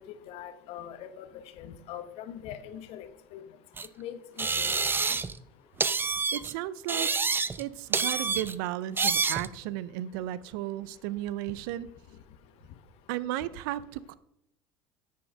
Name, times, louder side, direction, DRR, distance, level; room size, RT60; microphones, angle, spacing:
voice 1, 0.3-1.3 1.6-3.1 3.3-3.4 4.0-5.2, left 10 dB, 60° left, 10 dB, 1.1 m, -42 dB
sound 1, 3.8-3.9 4.4-5.4 5.8-6.5 6.9-7.6 7.9-8.5 9.0-9.5, right 4 dB, 20° right, 0.5 m, -28 dB
voice 2, 6.3-7.1 7.6-11.9 13.1-14.1, right 14 dB, 70° right, 18 dB, 0.5 m, -34 dB
9.2 x 6.5 x 5.2 m, 0.79 s
hypercardioid pair, 80°, 12 cm